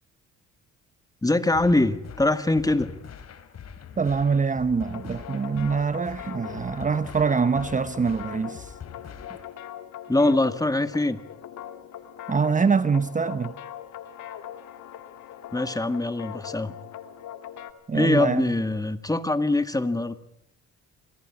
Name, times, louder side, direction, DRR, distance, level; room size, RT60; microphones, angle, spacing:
voice 1, 1.2-2.9 10.1-11.2 15.5-16.7 17.9-20.1, left 2 dB, 10° left, 1.8 m, -23 dB
sound 1, 1.5-9.5, left 7 dB, 55° left, 3.2 m, -44 dB
voice 2, 4.0-8.7 12.3-13.5 17.9-18.5, right 5 dB, 25° right, 0.9 m, -24 dB
sound 2, 4.8-17.7, left 10 dB, 75° left, 2.5 m, -41 dB
27.5 x 19.0 x 8.6 m
cardioid pair, 90°, 30 cm